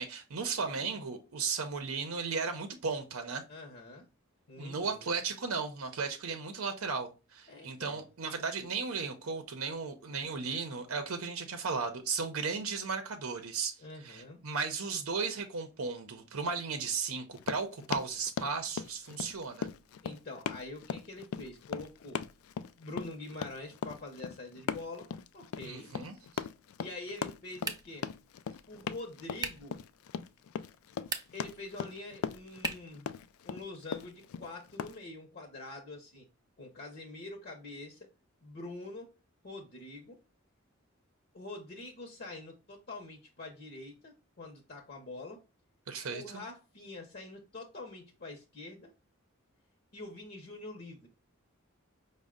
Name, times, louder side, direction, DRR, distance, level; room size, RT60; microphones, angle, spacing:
voice 1, 0.0-3.4 4.6-13.7 14.0-19.7 25.6-26.4 45.9-46.2, right 5 dB, 90° right, 0.6 m, -35 dB
voice 2, 3.5-4.1 4.5-5.1 7.5-8.1 13.8-14.4 20.0-22.2 22.8-25.1 25.3-25.9 26.8-28.1 28.7-29.8 31.3-33.1 33.4-36.3 36.6-38.1 38.4-39.1 39.4-40.2 41.3-45.4 46.1-48.9 49.9-51.1, left 2 dB, 45° left, 0.7 m, -45 dB
Run, 17.3-35.0, left 7 dB, 80° left, 0.3 m, -39 dB
sound 1, 27.6-28.1 29.4-29.7 31.0-31.5 32.6-33.0, right 4 dB, 20° right, 0.4 m, -38 dB
5.2 x 2.1 x 3.6 m
head